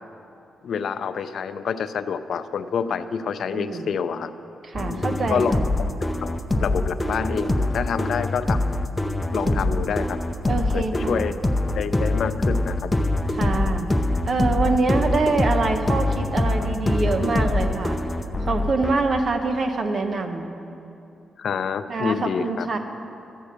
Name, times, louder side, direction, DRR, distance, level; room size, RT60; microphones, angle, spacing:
voice 1, 0.6-4.3 4.9-5.9 6.2-6.3 6.6-8.7 9.3-10.2 10.7-11.3 11.7-12.9 21.4-22.7, left 6 dB, 70° left, 11 dB, 0.5 m, -27 dB
voice 2, 3.5-3.9 4.6-5.6 9.4-10.1 10.5-11.2 13.3-13.9 14.3-18.0 18.5-20.5 21.9-22.8, right 3 dB, 55° right, 6 dB, 1.1 m, -25 dB
sound 1, 4.7-18.9, left 1 dB, 20° left, 0.7 m, -23 dB
13.0 x 8.9 x 6.7 m, 2.8 s
cardioid pair, 70°, 0 cm